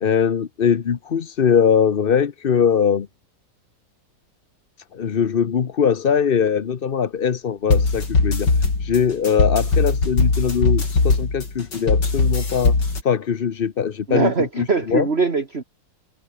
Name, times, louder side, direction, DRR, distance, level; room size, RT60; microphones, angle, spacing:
voice 1, 0.0-3.1 4.9-8.5 8.8-12.7 13.0-15.1, left 7 dB, 40° left, 0.8 m, -21 dB
sound 1, 7.7-13.0, left 3 dB, 80° left, 4.8 m, -20 dB
voice 2, 14.1-15.6, right 4 dB, 35° right, 2.3 m, -22 dB
omnidirectional pair, 1.9 m